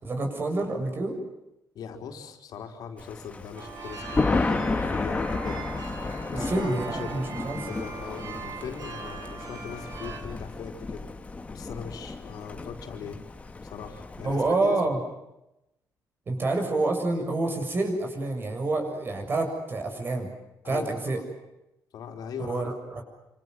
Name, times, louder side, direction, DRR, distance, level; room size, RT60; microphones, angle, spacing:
voice 1, 0.0-1.1 6.3-7.7 14.2-15.0 16.3-20.3 20.7-21.2 22.5-23.0, right 2 dB, 30° right, 4 dB, 7.0 m, -28 dB
voice 2, 1.7-5.7 6.3-7.2 7.7-11.1 11.5-13.2 13.6-14.8 20.6-21.2 21.9-22.7, left 7 dB, 70° left, 4 dB, 4.4 m, -40 dB
Thunder, 3.0-14.5, left 3 dB, 20° left, 1.9 m, -32 dB
sound 1, 3.6-10.2, right 5 dB, 65° right, 6.5 m, -40 dB
27.5 x 27.0 x 7.9 m, 0.91 s
cardioid pair, 150°, 7 cm